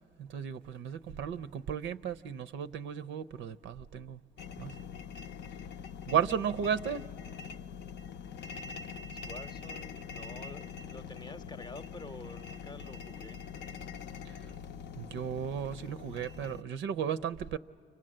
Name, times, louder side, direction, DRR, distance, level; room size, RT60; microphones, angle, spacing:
voice 1, 0.2-4.2 4.6-4.7 6.1-7.0 14.2-14.4 15.0-17.6, right 8 dB, 75° right, 0.5 m, -34 dB
sound 1, 4.4-16.6, left 6 dB, 60° left, 0.6 m, -44 dB
voice 2, 8.3-13.5, left 2 dB, 20° left, 0.7 m, -49 dB
29.5 x 25.5 x 7.6 m
cardioid pair, 90°, 20 cm